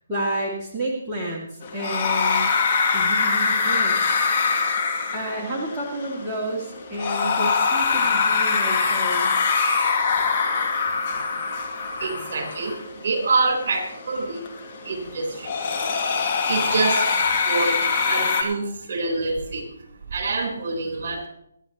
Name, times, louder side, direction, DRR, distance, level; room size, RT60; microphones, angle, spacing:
voice 1, 0.1-2.5 2.9-4.3 5.1-9.3, right 1 dB, 10° right, -7 dB, 2.5 m, -30 dB
Ghost Breathing, 1.6-18.4, left 5 dB, 35° left, 2.3 m, -24 dB
voice 2, 11.0-11.4 11.9-15.8 16.4-19.7 20.1-21.3, right 3 dB, 50° right, 2 dB, 4.1 m, -27 dB
26.0 x 9.8 x 3.1 m, 0.74 s
figure-of-eight pair, 145°, 0 cm